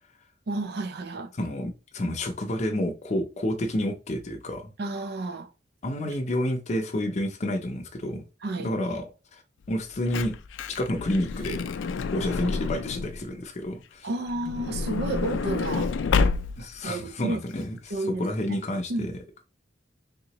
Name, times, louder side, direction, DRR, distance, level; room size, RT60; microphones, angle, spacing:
voice 1, 0.5-1.3 4.8-5.5 8.4-8.7 14.0-15.9 16.6-17.4 17.9-18.6 18.9-19.2, right 2 dB, 60° right, 0.5 m, -31 dB
voice 2, 1.3-4.7 5.8-8.2 8.6-9.0 9.3-9.4 9.7-10.3 10.7-11.6 12.1-14.1 16.6-17.8 18.2-19.1, left 1 dB, 40° left, 0.5 m, -29 dB
Truck / Door, 9.7-13.2 14.3-16.8 17.5-17.6 17.8-17.9, left 4 dB, 90° left, 0.4 m, -28 dB
3.6 x 2.9 x 2.9 m
head